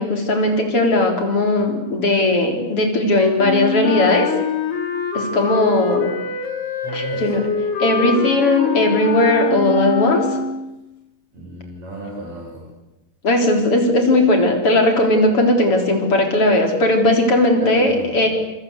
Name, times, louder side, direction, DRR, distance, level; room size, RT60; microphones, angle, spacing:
voice 1, 0.0-4.3 5.1-6.1 6.9-7.4 7.8-10.4 13.2-18.3, left 2 dB, 35° left, 4 dB, 4.5 m, -17 dB
Wind instrument woodwind instrument, 3.4-10.7, left 4 dB, 85° left, 5.3 m, -24 dB
voice 2, 6.8-7.3 11.3-12.7 17.6-18.3, equal, 45° right, -2 dB, 7.9 m, -33 dB
27.0 x 23.0 x 8.2 m, 0.95 s
omnidirectional pair, 4.5 m